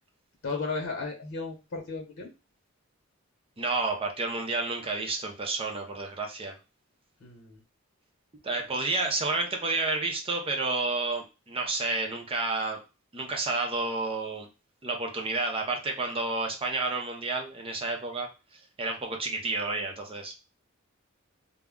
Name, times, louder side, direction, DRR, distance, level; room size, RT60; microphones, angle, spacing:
voice 1, 0.4-2.3 7.2-7.6, left 4 dB, 60° left, 0 dB, 1.0 m, -34 dB
voice 2, 3.6-6.6 8.4-12.8 13.1-14.5 14.8-18.3 18.8-20.4, right 3 dB, 25° right, 2 dB, 0.5 m, -30 dB
2.2 x 2.1 x 3.5 m, 0.29 s
head